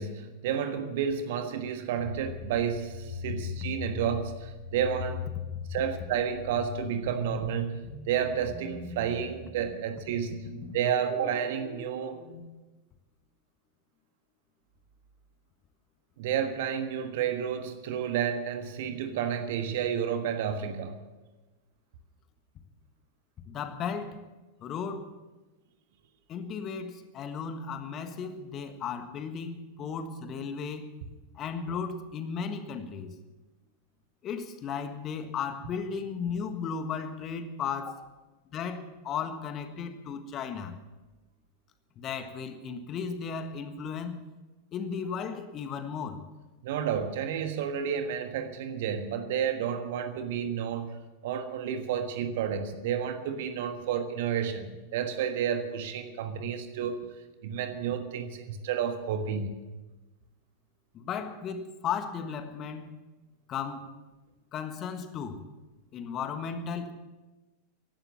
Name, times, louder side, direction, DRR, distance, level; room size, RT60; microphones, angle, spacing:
voice 1, 0.0-5.2 5.7-10.4 10.7-12.2 16.2-21.0 46.6-57.0 57.4-59.6, right 8 dB, 55° right, 1.4 m, -31 dB
sound 1, 2.0-12.3, left 4 dB, 60° left, 4.7 m, -40 dB
voice 2, 23.4-24.2 24.6-25.1 26.3-30.9 31.3-33.1 34.2-38.0 38.5-40.8 42.0-44.2 44.7-46.2 60.9-63.0 63.5-63.9 64.5-65.4 65.9-66.9, left 6 dB, 30° left, 1.5 m, -35 dB
15.5 x 11.5 x 7.2 m
figure-of-eight pair, 90°, 0 cm